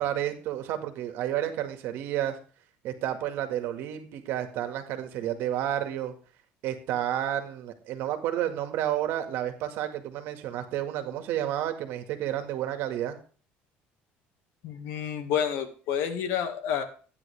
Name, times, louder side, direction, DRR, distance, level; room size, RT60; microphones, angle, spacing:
voice 1, 0.0-2.4 2.8-6.1 6.6-13.2, right 11 dB, 65° right, 7 dB, 1.9 m, -31 dB
voice 2, 14.6-16.8, left 8 dB, 70° left, 6 dB, 2.0 m, -29 dB
12.5 x 9.8 x 3.4 m, 0.39 s
cardioid pair, 145°, 4 cm